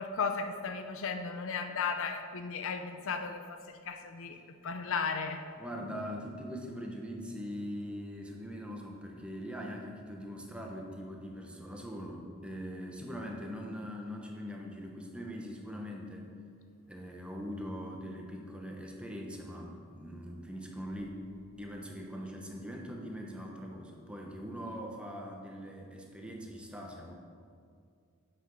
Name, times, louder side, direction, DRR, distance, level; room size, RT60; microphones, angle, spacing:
voice 1, 0.0-5.5, left 5 dB, 65° left, 7 dB, 0.6 m, -35 dB
voice 2, 5.6-16.3 16.9-21.2 21.6-27.1, equal, 5° right, 0 dB, 1.0 m, -42 dB
8.1 x 6.1 x 6.3 m, 2.3 s
head